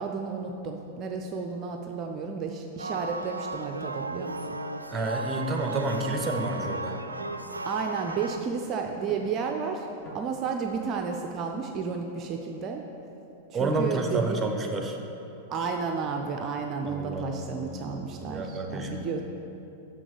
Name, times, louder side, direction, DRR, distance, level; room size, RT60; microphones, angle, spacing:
voice 1, 0.0-4.6 7.7-9.9 10.1-12.8 13.5-14.4 15.5-19.2, right 5 dB, 35° right, 3 dB, 0.5 m, -32 dB
sound 1, 2.8-8.4, right 3 dB, 85° right, 0.3 m, -35 dB
voice 2, 4.9-7.0 13.5-15.0 16.9-19.1, right 2 dB, 15° right, 3 dB, 1.0 m, -30 dB
sound 2, 6.2-6.4 7.2-7.3 8.1-8.3 9.1-9.3 10.1-10.3, left 2 dB, 35° left, 1.7 m, -45 dB
6.8 x 6.1 x 6.8 m, 3.0 s
figure-of-eight pair, 95°, 0 cm